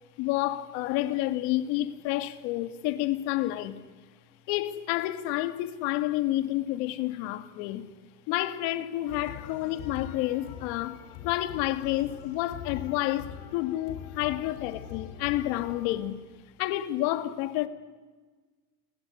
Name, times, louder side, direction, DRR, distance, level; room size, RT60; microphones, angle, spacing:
voice 1, 0.2-3.8 4.5-7.9 8.3-16.2 16.6-17.7, left 15 dB, 65° left, 2.3 m, -29 dB
sound 1, 9.1-15.9, left 9 dB, 80° left, 5.3 m, -43 dB
29.5 x 20.5 x 9.8 m
cardioid pair, 180°, 32 cm